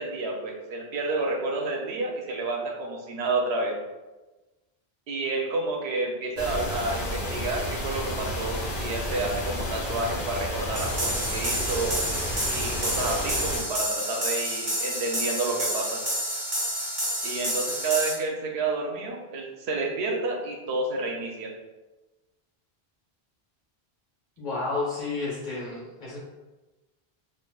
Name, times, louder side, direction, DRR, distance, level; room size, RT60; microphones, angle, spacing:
voice 1, 0.0-3.8 5.1-12.0 12.5-16.0 17.2-21.5, right 3 dB, 90° right, 0 dB, 0.9 m, -30 dB
sound 1, 6.4-13.6, equal, 75° left, 1.1 m, -31 dB
sound 2, 10.8-18.1, equal, 20° right, 0.6 m, -29 dB
voice 2, 24.4-26.2, left 3 dB, 50° left, -7 dB, 1.4 m, -31 dB
4.5 x 2.8 x 2.2 m, 1.1 s
omnidirectional pair, 1.1 m